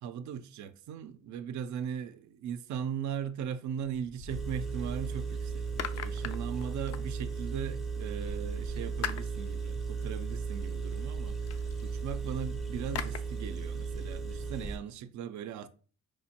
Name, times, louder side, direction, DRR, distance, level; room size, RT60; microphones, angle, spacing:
voice 1, 0.0-15.7, right 8 dB, 70° right, 0.5 m, -38 dB
sound 1, 3.8-5.0 5.4-7.6 8.2-13.2, left 7 dB, 55° left, 0.4 m, -43 dB
Engine, 4.3-14.8, right 5 dB, ahead, 0.5 m, -36 dB
4.8 x 2.1 x 2.8 m
cardioid pair, 90°, 30 cm